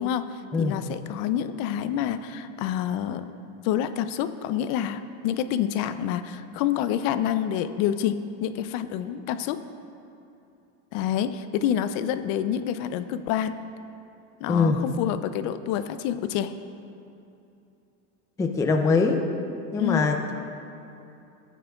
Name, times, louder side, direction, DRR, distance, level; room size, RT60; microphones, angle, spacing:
voice 1, 0.0-3.3 3.6-9.6 10.9-13.5 14.4-16.5 19.8-20.1, left 10 dB, 65° left, 11 dB, 0.5 m, -28 dB
voice 2, 14.5-14.8 18.4-19.2 19.7-20.3, left 4 dB, 10° left, 3 dB, 0.3 m, -23 dB
13.5 x 9.2 x 2.3 m, 2.8 s
cardioid pair, 135°, 38 cm